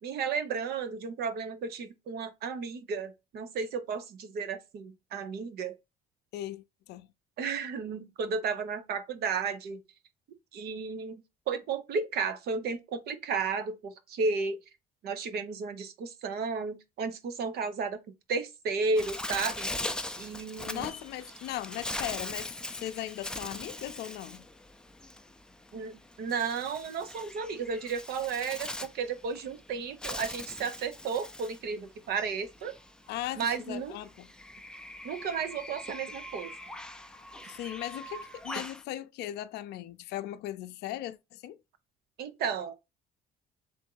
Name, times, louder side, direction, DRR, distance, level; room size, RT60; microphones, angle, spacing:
voice 1, 0.0-5.7 7.4-9.8 10.5-14.6 15.0-18.0 18.3-19.7 20.2-20.9 25.7-32.8 33.4-33.9 35.0-36.5 42.2-42.7, right 5 dB, 70° right, 0.8 m, -33 dB
voice 2, 6.3-7.1 20.7-24.4 33.1-34.3 37.4-41.6, left 13 dB, 75° left, 0.5 m, -38 dB
Bird, 19.0-38.8, left 1 dB, 5° left, 0.4 m, -41 dB
3.6 x 2.6 x 4.5 m
cardioid pair, 110°, 17 cm